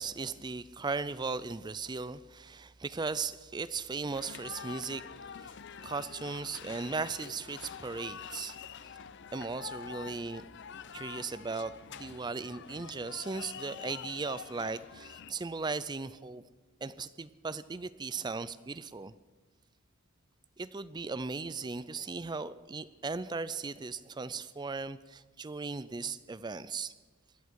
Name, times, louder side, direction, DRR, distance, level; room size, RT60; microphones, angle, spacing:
voice 1, 0.0-5.1 5.4-5.6 5.8-8.6 9.3-10.4 10.9-16.4 16.8-19.1 20.6-26.9, right 4 dB, 20° right, 16 dB, 0.4 m, -37 dB
sound 1, 4.1-15.3, left 7 dB, 55° left, 0.5 m, -46 dB
19.5 x 13.0 x 4.7 m, 1.3 s
head